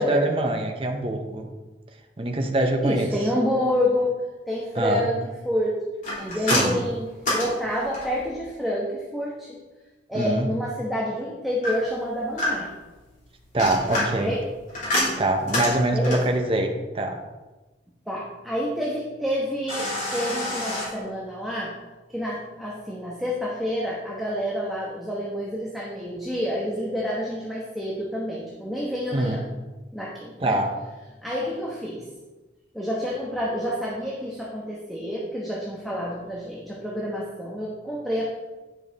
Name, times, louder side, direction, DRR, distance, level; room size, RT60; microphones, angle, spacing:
voice 1, 0.0-1.5 2.2-3.1 4.8-5.1 6.5-6.8 10.1-10.5 13.5-14.3 15.2-17.2 29.1-29.4 30.4-30.7, right 1 dB, 30° right, 3 dB, 0.7 m, -24 dB
voice 2, 2.5-4.2 4.5-5.8 6.2-9.6 10.1-12.7 14.2-14.4 15.9-16.3 18.1-21.7 22.1-29.4 29.9-30.6 31.2-32.1 32.7-38.3, equal, ahead, -5 dB, 1.1 m, -28 dB
sound 1, 6.0-8.3 11.6-12.9 13.4-16.4 19.7-20.9, left 1 dB, 45° left, 3.1 m, -27 dB
9.9 x 5.7 x 4.1 m, 1.2 s
head